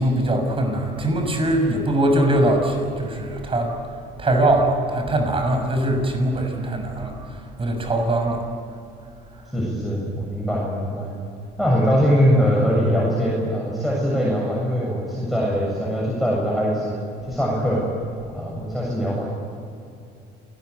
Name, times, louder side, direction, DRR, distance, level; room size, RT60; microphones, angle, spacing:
voice 1, 0.0-3.8 4.2-8.4 9.3-9.4, right 1 dB, 30° right, 4 dB, 6.5 m, -22 dB
voice 2, 9.5-11.1 11.6-17.0 17.3-17.8 18.3-19.3, equal, ahead, -5 dB, 7.5 m, -22 dB
28.5 x 20.0 x 8.3 m, 2.5 s
cardioid pair, 110°, 17 cm